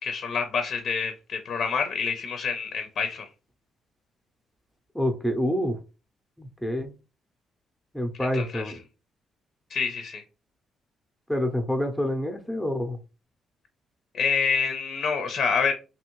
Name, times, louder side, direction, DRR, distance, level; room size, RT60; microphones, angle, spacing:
voice 1, 0.0-3.3 8.2-8.6 9.7-10.2 14.1-15.7, left 5 dB, 60° left, 0.5 m, -27 dB
voice 2, 4.9-5.8 6.4-6.9 7.9-8.8 11.3-13.0, left 1 dB, ahead, 0.6 m, -27 dB
2.8 x 2.6 x 3.0 m
cardioid pair, 90°, 0 cm